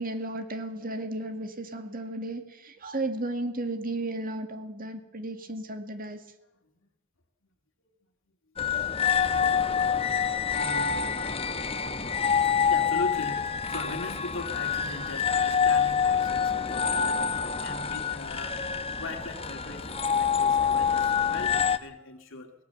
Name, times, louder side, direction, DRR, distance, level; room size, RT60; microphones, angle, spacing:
voice 1, 0.0-6.2, right 2 dB, 40° right, 7 dB, 2.1 m, -34 dB
sound 1, 8.6-21.8, left 7 dB, 25° left, 1.0 m, -26 dB
voice 2, 10.3-11.1 11.5-11.6 12.4-18.6 18.9-22.6, left 2 dB, 60° left, 2 dB, 2.7 m, -40 dB
23.5 x 18.5 x 7.1 m, 0.87 s
head